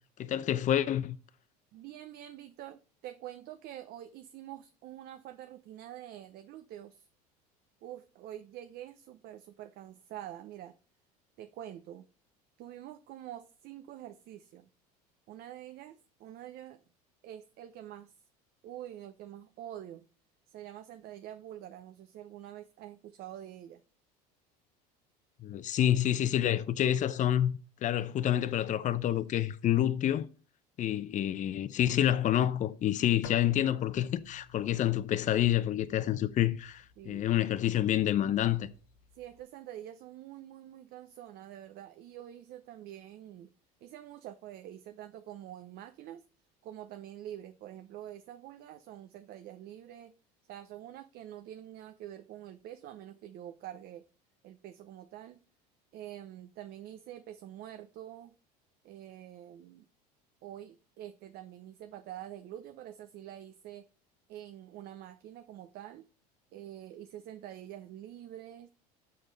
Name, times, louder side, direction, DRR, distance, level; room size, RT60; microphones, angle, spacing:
voice 1, 0.2-1.2 25.4-27.5 27.8-30.3 30.8-38.7, left 11 dB, 40° left, 0.7 m, -28 dB
voice 2, 1.7-7.1 7.8-10.8 11.4-12.1 12.6-14.7 15.3-16.8 17.2-18.1 18.6-20.1 20.5-23.8 37.0-37.3 39.1-43.5 43.8-46.2 46.6-50.2 50.5-54.1 54.4-55.4 55.9-58.3 58.8-59.8 60.4-63.9 64.3-66.1 66.5-68.7, right 12 dB, 50° right, 0.7 m, -46 dB
sound 1, 33.2-39.4, left 6 dB, 60° left, 0.9 m, -54 dB
6.9 x 6.4 x 4.0 m
hypercardioid pair, 85°, 20 cm